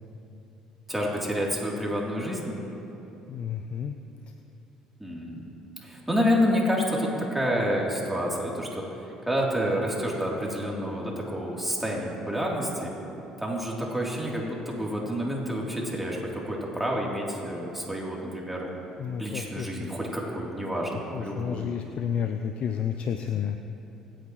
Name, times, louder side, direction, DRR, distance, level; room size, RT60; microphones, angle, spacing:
voice 1, 0.9-2.6 5.0-5.4 5.8-8.8 9.3-12.9 13.4-18.7 19.2-21.7, equal, 5° right, -3 dB, 3.2 m, -28 dB
voice 2, 3.3-3.9 19.0-19.7 20.9-23.6, left 8 dB, 55° left, 7 dB, 0.6 m, -31 dB
26.5 x 8.9 x 3.1 m, 3.0 s
hypercardioid pair, 55°, 2 cm